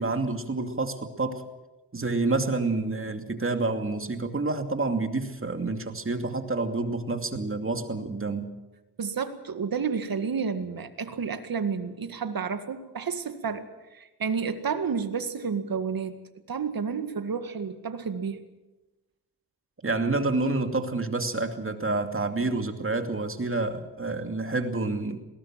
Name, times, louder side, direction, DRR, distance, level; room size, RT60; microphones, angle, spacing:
voice 1, 0.0-1.5 1.9-8.5 19.8-25.2, right 3 dB, 30° right, 6 dB, 2.6 m, -28 dB
voice 2, 9.0-13.7 13.9-16.2 16.5-18.4, right 6 dB, 60° right, 9 dB, 2.0 m, -30 dB
21.0 x 18.5 x 7.6 m, 1.1 s
cardioid pair, 65°, 41 cm